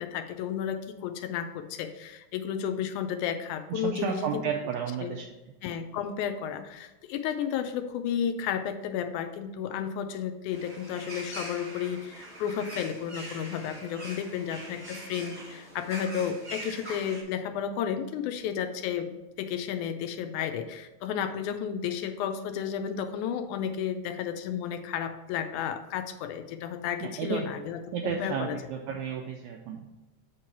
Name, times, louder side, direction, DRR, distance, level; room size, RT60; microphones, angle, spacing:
voice 1, 0.0-4.5 5.0-5.1 5.6-28.6, left 8 dB, 80° left, 8 dB, 2.0 m, -32 dB
voice 2, 3.7-5.3 27.0-27.4 27.9-29.9, right 7 dB, 80° right, 2 dB, 1.9 m, -32 dB
sound 1, 10.5-17.2, right 1 dB, 30° right, 1.5 m, -43 dB
8.2 x 3.2 x 5.8 m, 1.0 s
omnidirectional pair, 3.6 m